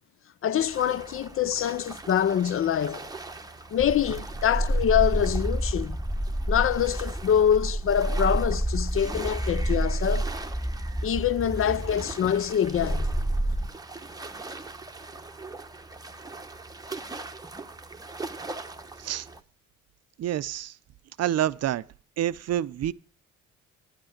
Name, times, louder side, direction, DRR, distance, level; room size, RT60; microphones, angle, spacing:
voice 1, 0.4-3.1 3.7-6.0 6.5-10.3 11.0-13.1, left 9 dB, 45° left, 0.5 m, -25 dB
sound 1, 0.6-19.4, right 3 dB, 10° right, 0.9 m, -42 dB
sound 2, 3.8-13.7, right 1 dB, 5° left, 2.0 m, -29 dB
voice 2, 20.2-20.8 21.2-21.8 22.2-22.9, right 11 dB, 55° right, 0.5 m, -27 dB
10.5 x 7.8 x 5.8 m
cardioid pair, 90°, 30 cm